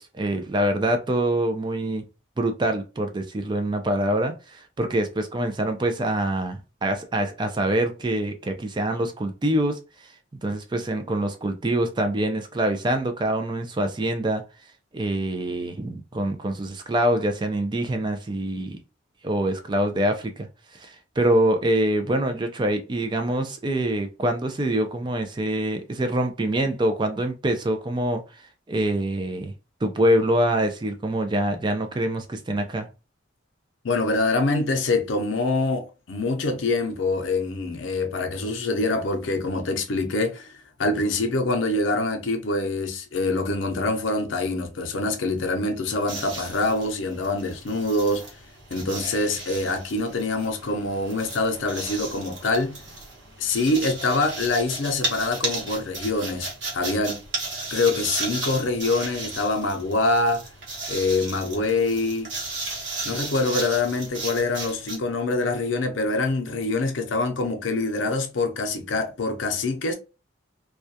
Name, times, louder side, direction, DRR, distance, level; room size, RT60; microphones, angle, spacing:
voice 1, 0.0-2.0 2.4-9.8 10.4-14.4 14.9-18.8 19.2-28.2 28.7-29.5 29.8-32.9, right 1 dB, 25° right, 0.4 m, -25 dB
voice 2, 33.8-40.5 40.8-48.3 48.7-52.8 53.4-57.2 57.7-60.4 60.9-62.3 63.0-69.9, left 2 dB, 80° left, 0.6 m, -25 dB
sound 1, 46.0-65.0, right 2 dB, 80° right, 1.0 m, -35 dB
2.3 x 2.2 x 2.6 m
head